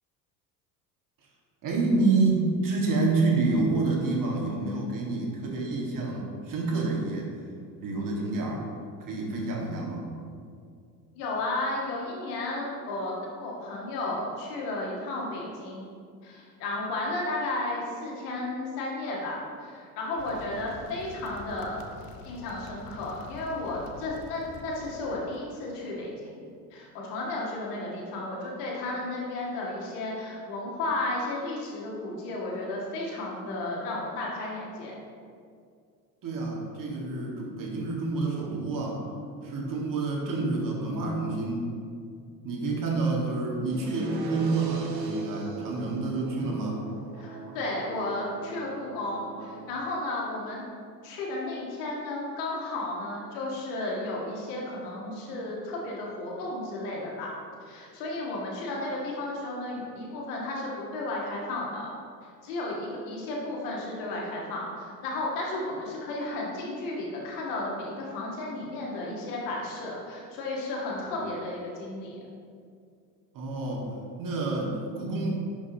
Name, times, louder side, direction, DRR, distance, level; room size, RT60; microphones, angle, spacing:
voice 1, 1.6-7.3 7.8-8.6 9.1-10.2 36.2-39.0 39.4-41.7 42.4-46.8 73.3-73.9 74.2-75.3, right 3 dB, 40° right, -2 dB, 1.9 m, -28 dB
voice 2, 11.1-13.1 13.4-15.9 16.2-21.8 22.2-26.4 26.7-34.9 47.2-50.6 51.0-57.3 57.7-61.8 62.4-72.2, left 2 dB, 65° left, -3 dB, 2.0 m, -33 dB
sound 1, 20.2-25.4, left 4 dB, 45° left, 0.8 m, -47 dB
sound 2, 43.7-49.7, right 4 dB, 85° right, 0.9 m, -40 dB
10.5 x 5.4 x 3.0 m, 2.3 s
figure-of-eight pair, 70°, 49 cm